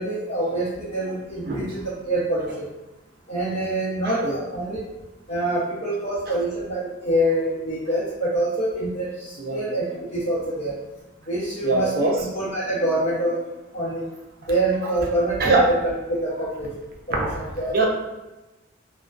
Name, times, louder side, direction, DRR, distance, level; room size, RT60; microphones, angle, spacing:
voice 1, 0.0-2.7 3.3-4.8 5.3-10.8 11.3-13.4 13.7-14.0 14.4-16.7 17.1-17.7, right 1 dB, 40° left, -11 dB, 0.7 m, -26 dB
voice 2, 4.0-4.3 9.4-9.6 11.6-12.1 15.4-15.7 17.1-17.3 17.7-17.8, right 2 dB, 50° right, -1 dB, 0.5 m, -21 dB
2.3 x 2.2 x 2.4 m, 1.1 s
head